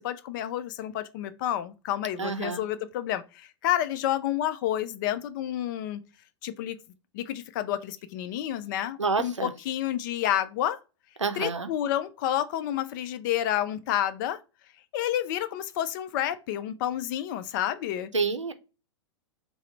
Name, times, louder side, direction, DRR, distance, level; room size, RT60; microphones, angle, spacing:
voice 1, 0.0-6.0 6.4-6.8 7.1-10.8 11.4-14.4 14.9-18.1, left 12 dB, 40° left, 0.5 m, -29 dB
voice 2, 2.2-2.6 9.0-9.5 11.2-11.7 18.1-18.5, right 4 dB, 85° right, 0.5 m, -28 dB
3.7 x 2.0 x 4.3 m
figure-of-eight pair, 100°, 15 cm